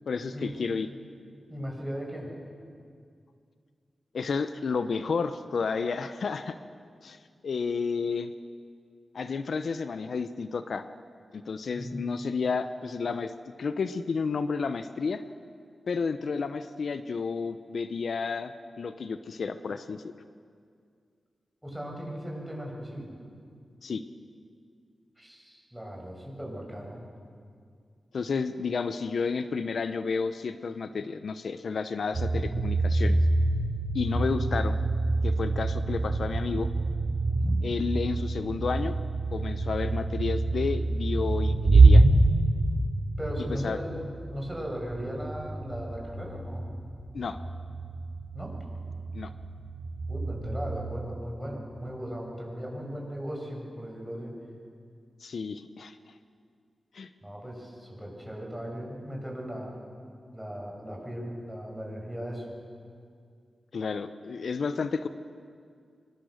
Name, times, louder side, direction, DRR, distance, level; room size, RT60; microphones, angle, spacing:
voice 1, 0.1-0.9 4.1-6.6 7.0-7.2 7.4-8.3 9.1-10.8 11.3-13.3 13.6-15.2 15.9-20.1 23.8-24.0 28.1-33.2 33.9-34.8 35.2-36.7 37.6-39.0 39.3-42.0 43.6-43.8 47.1-47.4 49.1-49.3 55.2-56.0 56.9-57.1 63.7-65.1, left 5 dB, 75° left, 11 dB, 0.8 m, -31 dB
voice 2, 1.5-2.3 11.8-12.2 21.6-23.2 25.2-27.0 37.3-37.6 43.2-44.0 44.3-46.7 48.3-48.5 50.1-54.3 57.2-59.8 60.3-62.5, equal, 5° right, -1 dB, 6.8 m, -37 dB
sound 1, 32.1-50.8, right 2 dB, 55° right, 3.6 m, -26 dB
24.0 x 22.0 x 6.6 m, 2.2 s
cardioid pair, 70°, 0 cm